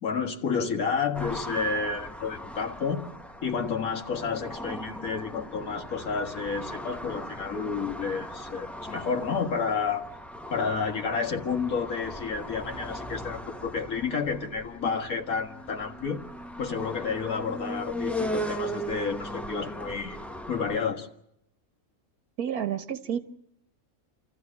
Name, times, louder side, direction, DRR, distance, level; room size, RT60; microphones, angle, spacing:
voice 1, 0.0-3.0 3.4-10.1 10.5-16.2 16.6-20.2 20.5-21.1, left 5 dB, 70° left, 2.2 m, -30 dB
sound 1, 1.1-20.8, equal, ahead, 0.8 m, -38 dB
voice 2, 22.4-23.2, right 9 dB, 85° right, 1.7 m, -30 dB
27.5 x 14.5 x 9.8 m
omnidirectional pair, 1.5 m